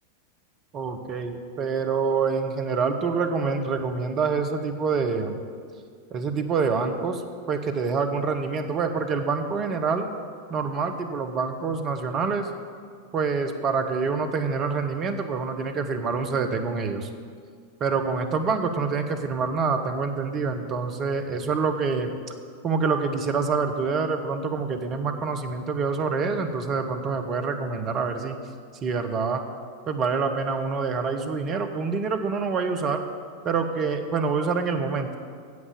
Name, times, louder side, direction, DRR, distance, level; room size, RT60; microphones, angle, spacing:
voice 1, 0.7-5.4 6.1-7.2 7.5-10.1 10.5-12.5 13.1-17.1 17.8-22.1 22.6-28.4 28.8-29.4 29.9-33.0 33.4-35.2, right 5 dB, 30° right, 6 dB, 1.0 m, -26 dB
9.6 x 7.8 x 7.0 m, 2.1 s
figure-of-eight pair, 90°, 0 cm